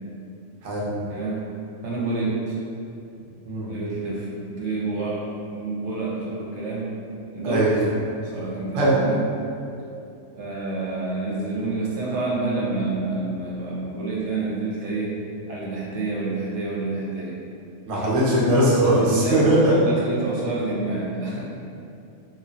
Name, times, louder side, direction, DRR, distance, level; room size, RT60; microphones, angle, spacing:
voice 1, 1.1-1.4 1.8-2.6 3.7-6.9 7.3-7.7 8.2-9.2 10.4-15.2 15.5-17.4 19.0-21.4, right 3 dB, 65° right, -5 dB, 0.8 m, -28 dB
voice 2, 17.9-19.7, right 1 dB, 45° right, -7 dB, 0.4 m, -20 dB
2.2 x 2.2 x 3.8 m, 2.6 s
omnidirectional pair, 1.4 m